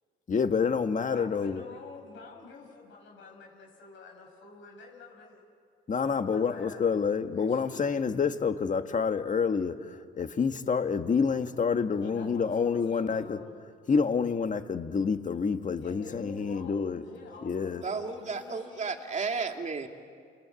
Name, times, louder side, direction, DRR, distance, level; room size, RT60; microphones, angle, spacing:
voice 1, 0.3-1.6 5.9-13.4 13.9-17.1 17.4-17.8, left 5 dB, 40° left, 8 dB, 1.6 m, -28 dB
voice 2, 1.1-5.4 6.2-6.9 7.4-8.1 12.0-13.5 15.7-18.9, left 4 dB, 75° left, -1 dB, 6.7 m, -48 dB
voice 3, 17.8-19.9, right 4 dB, 35° right, 4 dB, 2.7 m, -33 dB
28.5 x 22.5 x 8.4 m, 2.2 s
cardioid pair, 90°, 20 cm